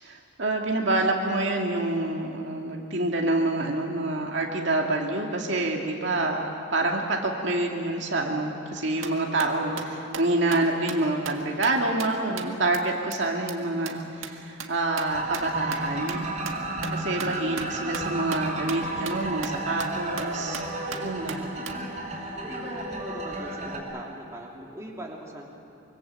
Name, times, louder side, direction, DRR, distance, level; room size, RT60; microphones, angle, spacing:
voice 1, 0.0-16.3 16.9-20.6 21.0-21.4, right 2 dB, 60° right, 0 dB, 2.3 m, -27 dB
sound 1, 9.0-12.8 13.1-13.2 13.5-13.6 13.9-21.8, right 4 dB, 85° right, 1.8 m, -39 dB
sound 2, 15.1-23.8, right 2 dB, 35° right, 4.7 m, -32 dB
voice 2, 22.4-25.5, right 1 dB, 15° right, -2 dB, 3.1 m, -40 dB
25.0 x 24.5 x 7.7 m, 2.6 s
head